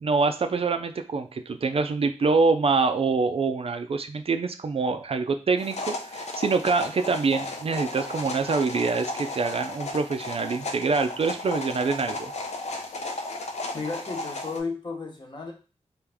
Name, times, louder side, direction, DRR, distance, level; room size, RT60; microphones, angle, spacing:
voice 1, 0.0-12.3, right 4 dB, 55° right, 8 dB, 0.4 m, -25 dB
sound 1, 5.6-14.6, left 2 dB, 75° left, 0.6 m, -34 dB
voice 2, 13.7-15.5, left 4 dB, 40° left, 1 dB, 1.0 m, -33 dB
3.4 x 2.5 x 3.4 m, 0.34 s
wide cardioid pair, 70°, 12 cm